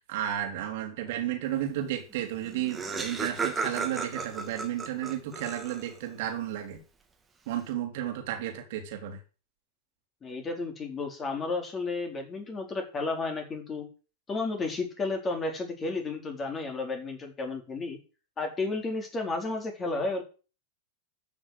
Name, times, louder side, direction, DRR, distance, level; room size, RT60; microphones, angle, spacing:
voice 1, 0.0-6.8 7.5-9.2, right 11 dB, 50° right, 4 dB, 3.0 m, -33 dB
Laughter, 2.1-2.2 2.4-6.1, right 4 dB, 15° right, 2.7 m, -34 dB
voice 2, 10.2-13.9 14.3-18.0 18.4-20.2, left 3 dB, 20° left, 3 dB, 4.4 m, -32 dB
13.5 x 6.6 x 7.9 m, 0.35 s
figure-of-eight pair, 90°, 0 cm